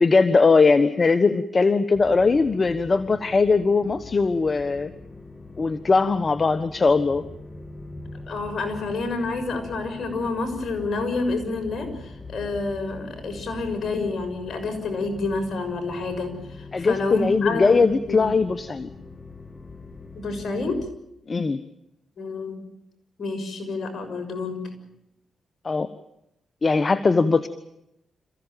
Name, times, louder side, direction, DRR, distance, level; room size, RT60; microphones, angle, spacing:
voice 1, 0.0-4.9 5.6-7.2 16.7-18.9 21.3-21.6 25.6-25.9 26.6-27.5, left 4 dB, 40° left, 12 dB, 1.2 m, -20 dB
sound 1, 1.9-20.9, left 3 dB, 25° left, 2.1 m, -42 dB
voice 2, 8.3-18.2 20.1-20.8 22.2-22.6 23.2-24.6, left 3 dB, 60° left, 6 dB, 6.5 m, -28 dB
27.5 x 15.5 x 9.2 m, 0.83 s
supercardioid pair, 55°, 0 cm